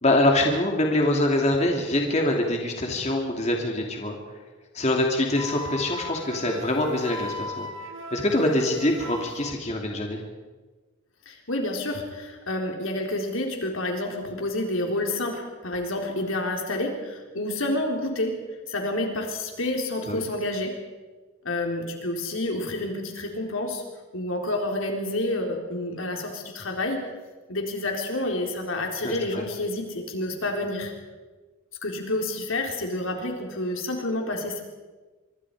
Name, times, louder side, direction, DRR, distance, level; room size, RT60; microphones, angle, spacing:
voice 1, 0.0-4.2 4.7-7.7 8.1-10.2 20.0-20.2 29.0-29.4, left 1 dB, 35° left, 1 dB, 2.7 m, -24 dB
Wind instrument woodwind instrument, 5.4-9.6, left 1 dB, 90° right, 2.0 m, -38 dB
voice 2, 11.3-18.3 18.7-20.7 21.4-23.8 24.1-27.0 27.5-30.9 31.8-34.6, left 1 dB, 85° left, 2 dB, 4.1 m, -29 dB
25.5 x 24.0 x 4.9 m, 1.3 s
head